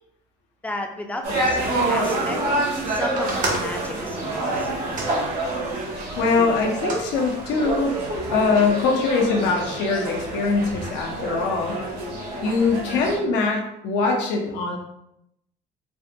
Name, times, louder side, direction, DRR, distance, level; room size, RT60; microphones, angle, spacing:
voice 1, 0.6-2.4 2.9-4.7, left 1 dB, 10° left, 4 dB, 0.4 m, -33 dB
sound 1, 1.2-13.2, right 2 dB, 90° right, 1.4 m, -27 dB
sound 2, 3.1-5.9 6.5-7.1 7.9-8.5, right 2 dB, 50° right, 0.8 m, -33 dB
voice 2, 6.2-7.9 8.3-11.8 12.4-14.8, left 4 dB, 90° left, 0 dB, 0.7 m, -22 dB
3.4 x 2.2 x 2.7 m, 0.79 s
cardioid pair, 110°, 17 cm